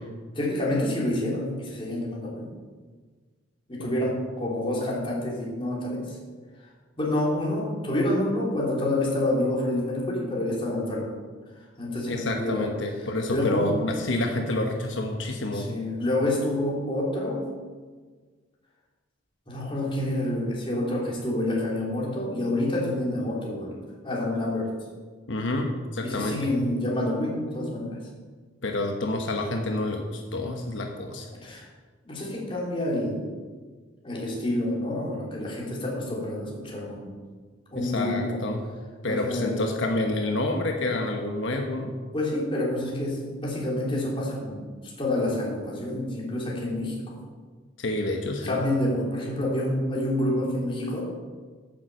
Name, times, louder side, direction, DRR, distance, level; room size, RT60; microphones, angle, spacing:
voice 1, 0.3-2.5 3.7-6.2 7.0-11.1 11.6-12.7 13.3-13.8 15.5-17.5 19.5-24.7 26.0-28.0 31.4-31.7 32.0-33.2 34.0-37.1 37.7-38.5 39.1-39.6 42.1-47.2 48.4-51.1, left 1 dB, 30° left, -4 dB, 3.1 m, -28 dB
voice 2, 12.1-15.7 25.3-26.4 28.6-31.3 37.8-38.6 39.0-41.9 47.8-48.6, left 2 dB, 85° left, 2 dB, 1.1 m, -28 dB
9.3 x 7.4 x 7.6 m, 1.5 s
head